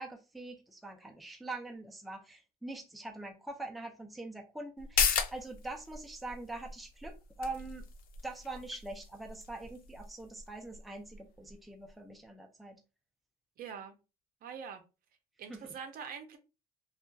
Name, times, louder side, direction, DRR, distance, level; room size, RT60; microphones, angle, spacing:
voice 1, 0.0-7.8 8.2-12.8 15.5-15.7, right 2 dB, ahead, 0.4 m, -44 dB
sound 1, 4.8-11.9 12.2-12.3, left 6 dB, 60° left, 0.4 m, -37 dB
voice 2, 13.6-14.0 14.4-14.8 15.4-16.4, right 7 dB, 60° right, 0.6 m, -44 dB
2.6 x 2.3 x 2.2 m
cardioid pair, 110°, 17 cm